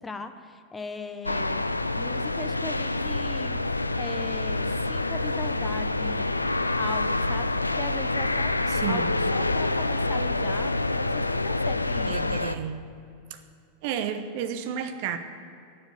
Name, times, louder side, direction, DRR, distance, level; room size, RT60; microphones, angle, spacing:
voice 1, 0.0-1.6 2.0-3.6 3.9-6.3 6.7-12.4, left 3 dB, 15° left, 9 dB, 0.7 m, -39 dB
sound 1, 1.2-12.5, left 2 dB, 85° left, 0.3 m, -27 dB
voice 2, 8.7-9.1 12.1-12.8 13.3-13.4 13.8-15.2, right 8 dB, 50° right, 8 dB, 0.9 m, -31 dB
9.6 x 7.3 x 8.4 m, 2.5 s
figure-of-eight pair, 90°, 0 cm